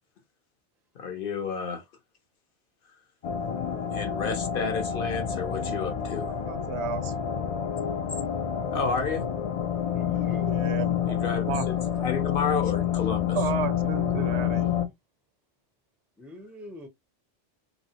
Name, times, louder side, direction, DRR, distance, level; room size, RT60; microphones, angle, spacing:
voice 1, 1.0-1.8 3.9-6.3 8.7-9.3 11.1-11.8 12.0-13.4, left 5 dB, 55° left, 0.7 m, -31 dB
sound 1, 3.2-14.9, left 9 dB, 80° left, 0.3 m, -28 dB
voice 2, 6.3-7.1 10.5-11.2 11.5-11.7 13.2-14.7, right 7 dB, 75° right, 0.8 m, -33 dB
voice 3, 9.8-10.7 16.2-16.9, left 1 dB, ahead, 0.3 m, -44 dB
3.2 x 2.1 x 2.7 m
omnidirectional pair, 1.2 m